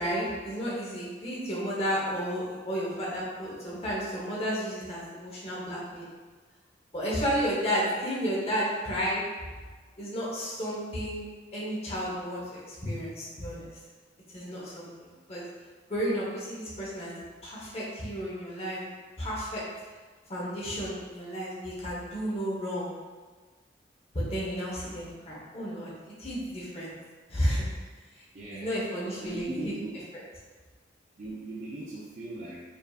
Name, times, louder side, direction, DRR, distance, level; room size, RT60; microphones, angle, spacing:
voice 1, 0.0-6.1 6.9-9.2 10.0-11.2 11.5-13.7 14.3-15.4 15.9-17.1 17.4-18.8 19.2-19.6 20.3-22.9 24.1-26.9 27.3-27.7 28.5-29.7 30.1-30.2, equal, 35° left, -6 dB, 1.0 m, -32 dB
voice 2, 28.3-28.7 29.2-30.0 31.2-32.6, right 1 dB, 40° right, -6 dB, 0.5 m, -38 dB
5.1 x 2.7 x 2.4 m, 1.4 s
head